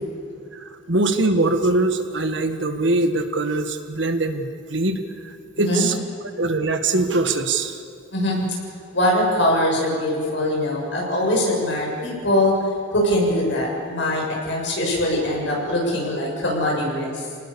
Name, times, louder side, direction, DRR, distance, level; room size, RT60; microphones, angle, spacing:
voice 1, 0.5-6.0 6.4-7.8, right 2 dB, 70° right, 7 dB, 1.7 m, -22 dB
voice 2, 5.6-5.9 8.1-8.4 8.9-12.6 12.9-17.3, left 1 dB, 65° left, -1 dB, 7.1 m, -22 dB
29.0 x 19.0 x 7.0 m, 2.3 s
head